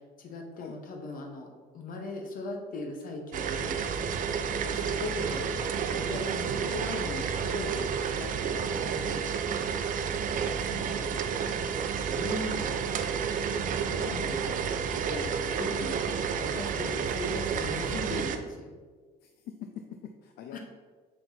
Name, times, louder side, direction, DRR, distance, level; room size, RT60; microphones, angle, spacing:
voice 1, 0.2-1.5 1.7-3.7 4.7-5.6 5.9-9.7 10.6-11.2 12.1-12.7 13.5-16.0 16.4-18.7 20.5-20.6, left 2 dB, 55° left, 3 dB, 1.3 m, -39 dB
sound 1, 3.3-18.4, right 6 dB, 50° right, 0.6 m, -30 dB
voice 2, 10.7-11.1 11.6-12.1 13.9-14.1 15.6-15.7 19.2-20.6, left 8 dB, 75° left, 5 dB, 0.5 m, -45 dB
6.2 x 4.4 x 4.1 m, 1.4 s
cardioid pair, 110°, 17 cm